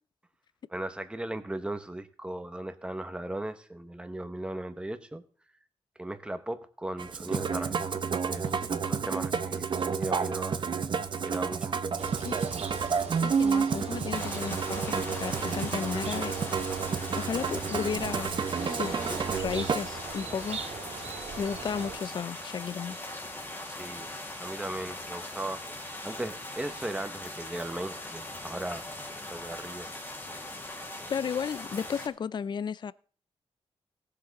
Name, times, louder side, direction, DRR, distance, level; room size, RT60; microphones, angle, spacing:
voice 1, 0.7-5.2 6.0-7.8 8.2-10.5 11.2-11.8 23.5-24.1 24.4-28.9 29.3-29.9, right 1 dB, 10° right, 0.9 m, -37 dB
Musical instrument, 7.0-19.9, right 6 dB, 45° right, 0.7 m, -30 dB
sound 1, 12.0-22.0, right 5 dB, 80° right, 1.9 m, -41 dB
voice 2, 13.2-16.3 17.2-18.3 18.6-20.6 21.4-23.0 31.1-32.9, left 6 dB, 45° left, 0.4 m, -34 dB
sound 2, 14.1-32.1, left 1 dB, 20° left, 1.9 m, -40 dB
18.0 x 6.7 x 4.0 m
wide cardioid pair, 145°, 11 cm